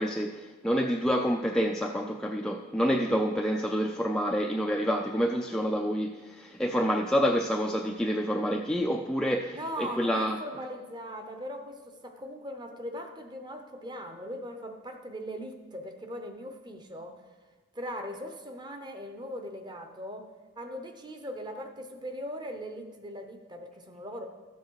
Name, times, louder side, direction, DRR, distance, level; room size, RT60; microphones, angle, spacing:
voice 1, 0.0-10.4, equal, 5° left, 2 dB, 0.3 m, -28 dB
voice 2, 9.5-17.2 17.7-20.3 20.6-24.3, equal, 20° right, 5 dB, 0.8 m, -40 dB
13.0 x 7.2 x 4.6 m, 1.3 s
head